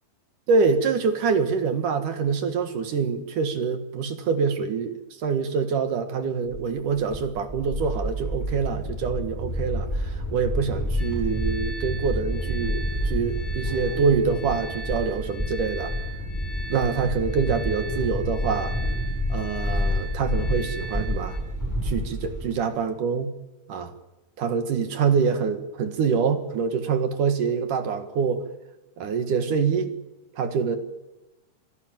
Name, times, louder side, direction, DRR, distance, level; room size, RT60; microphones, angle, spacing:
voice 1, 0.5-15.9 16.7-18.8 19.3-21.4 21.8-23.3 23.7-23.9 24.4-28.4 29.0-29.9 30.4-30.8, right 5 dB, 60° right, 8 dB, 2.9 m, -25 dB
sound 1, 6.5-22.5, equal, 5° left, 6.7 m, -29 dB
sound 2, 11.0-21.4, right 2 dB, 45° left, 5.7 m, -40 dB
25.0 x 17.5 x 9.1 m, 0.99 s
omnidirectional pair, 4.6 m